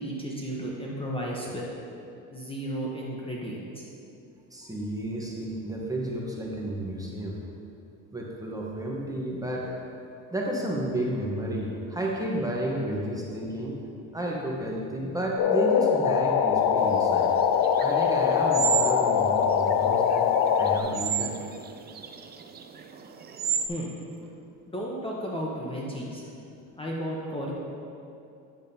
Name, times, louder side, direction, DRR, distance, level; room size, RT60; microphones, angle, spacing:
voice 1, 0.0-1.7 2.3-3.9 23.7-23.9 24.7-26.2 26.8-27.5, equal, 15° left, -3 dB, 0.9 m, -33 dB
voice 2, 4.5-7.4 8.1-9.7 10.3-13.8 14.1-17.4 17.8-20.2 20.6-21.3, right 1 dB, 10° right, -3 dB, 1.0 m, -31 dB
sound 1, 15.4-20.8, left 7 dB, 65° left, 0.5 m, -23 dB
sound 2, 16.9-23.7, right 8 dB, 30° right, 0.4 m, -33 dB
9.0 x 7.0 x 2.7 m, 2.6 s
cardioid pair, 110°, 36 cm